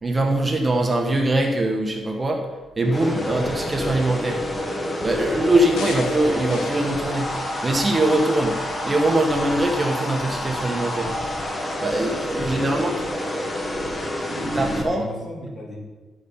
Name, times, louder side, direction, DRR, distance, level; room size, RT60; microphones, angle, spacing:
voice 1, 0.0-2.5 2.8-4.4 5.0-7.3 7.6-11.1 11.8-12.9 14.5-15.0, right 1 dB, 20° right, 2 dB, 1.1 m, -22 dB
sound 1, 2.8-14.8, left 1 dB, 20° left, 1.3 m, -28 dB
voice 2, 3.2-3.5 5.2-5.4 12.4-12.8 14.3-15.8, left 1 dB, 35° left, -4 dB, 3.0 m, -36 dB
sound 2, 5.8-8.2 8.7-8.9, left 4 dB, 85° left, 1.3 m, -35 dB
12.5 x 5.0 x 5.5 m, 1.3 s
cardioid pair, 120°, 0 cm